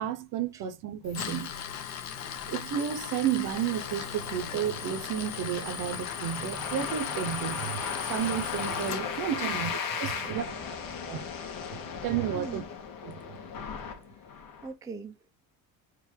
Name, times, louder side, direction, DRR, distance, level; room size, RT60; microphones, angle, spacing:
voice 1, 0.0-1.5 2.5-10.5 11.1-11.3 11.7-12.6 13.0-13.2, right 9 dB, 60° right, 0.7 m, -32 dB
Tools, 1.0-9.0, left 8 dB, 50° left, 0.8 m, -38 dB
sound 1, 3.5-14.7, left 6 dB, 65° left, 1.2 m, -37 dB
voice 2, 10.1-10.6 10.9-11.2 12.3-12.7 14.6-15.3, right 4 dB, 10° right, 0.4 m, -43 dB
3.7 x 2.5 x 4.3 m
cardioid pair, 150°, 36 cm